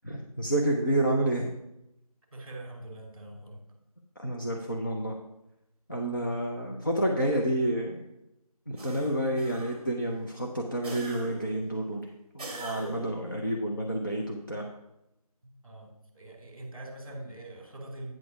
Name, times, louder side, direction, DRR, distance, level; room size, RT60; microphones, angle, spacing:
voice 1, 0.0-1.5 4.2-5.2 5.9-8.0 8.7-12.0 12.3-14.7, right 1 dB, 30° left, -1 dB, 0.7 m, -29 dB
voice 2, 2.3-3.8 15.4-18.1, right 1 dB, 35° right, 2 dB, 1.9 m, -44 dB
sound 1, 8.8-10.0 10.8-11.6 12.4-13.2, right 2 dB, 10° right, 1.9 m, -42 dB
8.9 x 4.1 x 6.7 m, 0.87 s
figure-of-eight pair, 170°, 20 cm